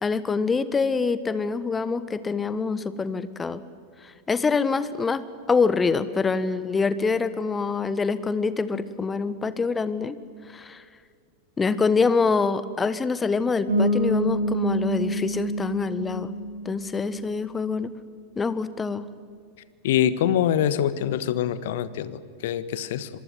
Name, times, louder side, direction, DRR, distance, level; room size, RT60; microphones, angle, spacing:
voice 1, 0.0-3.6 4.0-10.2 10.5-10.8 11.6-16.3 16.6-17.9 18.4-19.0, left 4 dB, 15° left, 14 dB, 1.4 m, -25 dB
Bass guitar, 13.7-17.4, equal, 65° right, 7.2 m, -27 dB
voice 2, 19.8-23.1, left 10 dB, 55° left, 15 dB, 1.4 m, -24 dB
26.0 x 23.5 x 9.3 m, 2.2 s
figure-of-eight pair, 90°, 0 cm